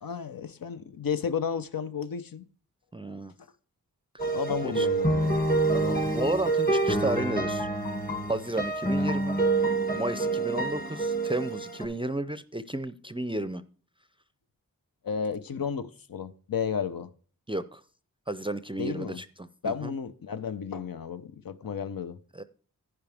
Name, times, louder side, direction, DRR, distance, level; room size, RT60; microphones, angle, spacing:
voice 1, 0.0-2.4 4.3-5.4 9.0-9.1 15.0-17.1 18.8-19.2 19.6-22.2, left 6 dB, 75° left, 0.8 m, -33 dB
voice 2, 2.9-3.3 4.6-4.9 5.7-7.7 8.3-9.4 9.9-13.6 17.5-17.8 18.3-19.9 22.3-22.4, right 2 dB, 15° right, 0.5 m, -32 dB
sound 1, 4.2-11.8, right 2 dB, 25° left, 1.9 m, -27 dB
10.5 x 9.7 x 3.5 m
wide cardioid pair, 65°, 34 cm